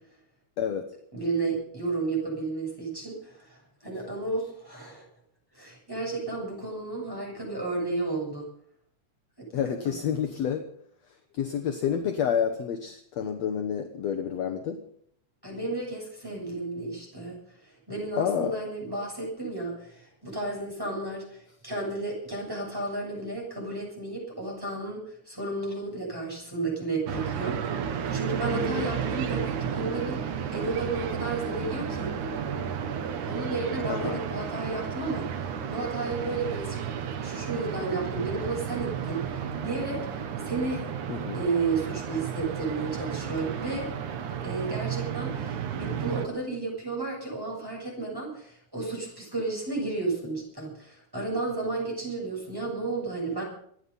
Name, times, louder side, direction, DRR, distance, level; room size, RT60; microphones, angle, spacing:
voice 1, 1.1-5.1 5.5-8.4 9.4-9.5 9.8-10.0 15.4-32.1 33.3-35.3 35.7-36.8 37.2-40.8 41.3-43.9 44.4-53.4, right 3 dB, 5° right, -3 dB, 7.3 m, -32 dB
voice 2, 9.5-10.6 11.3-14.8 18.2-18.6 28.6-28.9 33.9-34.2 41.1-41.4, left 8 dB, 65° left, 5 dB, 2.1 m, -29 dB
sound 1, 27.1-46.3, right 7 dB, 70° right, 2.6 m, -32 dB
26.0 x 10.0 x 5.5 m, 0.64 s
omnidirectional pair, 3.7 m